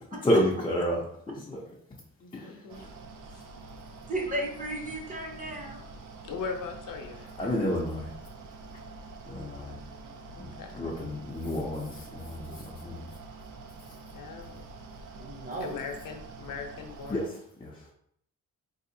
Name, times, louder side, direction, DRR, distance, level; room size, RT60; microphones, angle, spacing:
voice 1, 0.2-1.7 2.3-2.9 7.4-8.1 9.3-9.8 10.4-13.1 17.1-17.9, equal, 15° left, -4 dB, 0.4 m, -31 dB
voice 2, 2.2-2.8 3.3-3.4 6.2-7.5 9.7-10.7 14.1-14.6 15.6-17.3, left 5 dB, 70° left, 4 dB, 0.6 m, -40 dB
Mechanical fan, 2.7-17.3, right 3 dB, 65° right, 0.5 m, -46 dB
voice 3, 4.1-5.8 15.1-15.8, right 1 dB, 25° right, -1 dB, 0.7 m, -34 dB
4.0 x 2.7 x 2.6 m, 0.67 s
wide cardioid pair, 175°, 33 cm